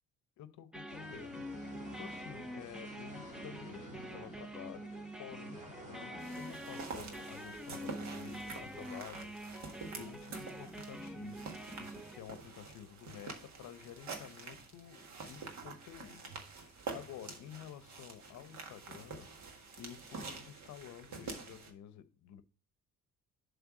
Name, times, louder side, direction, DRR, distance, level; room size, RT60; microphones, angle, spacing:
voice 1, 0.4-22.4, left 10 dB, 65° left, 0.7 m, -51 dB
sound 1, 0.7-12.2, equal, ahead, 0.5 m, -46 dB
sound 2, 0.9-9.0, equal, 25° right, 1.9 m, -54 dB
sound 3, 6.2-21.7, right 4 dB, 60° right, 1.6 m, -47 dB
7.4 x 3.5 x 6.0 m
cardioid pair, 140°, 31 cm